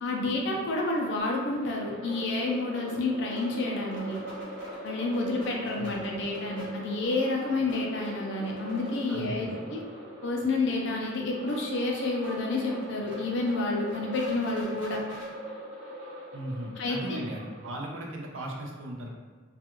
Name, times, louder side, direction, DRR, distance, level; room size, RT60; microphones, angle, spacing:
voice 1, 0.0-4.2 4.8-9.8 10.2-15.0 16.8-17.2, left 2 dB, 60° left, 0 dB, 0.5 m, -29 dB
sound 1, 1.2-17.9, left 1 dB, 60° right, 1.2 m, -40 dB
voice 2, 5.7-6.1 9.1-9.7 16.3-19.1, right 1 dB, 75° right, 0 dB, 0.5 m, -37 dB
2.3 x 2.3 x 2.9 m, 1.4 s
head